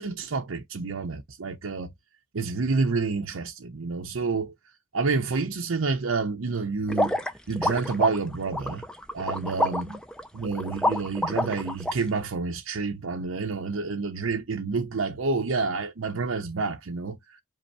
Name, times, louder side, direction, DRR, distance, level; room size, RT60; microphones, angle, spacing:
voice 1, 0.0-1.9 2.3-4.5 4.9-8.8 9.1-10.0 10.3-17.4, right 4 dB, 70° right, 0.7 m, -29 dB
sound 1, 6.9-11.9, left 1 dB, 5° left, 0.5 m, -28 dB
5.2 x 2.0 x 4.6 m
head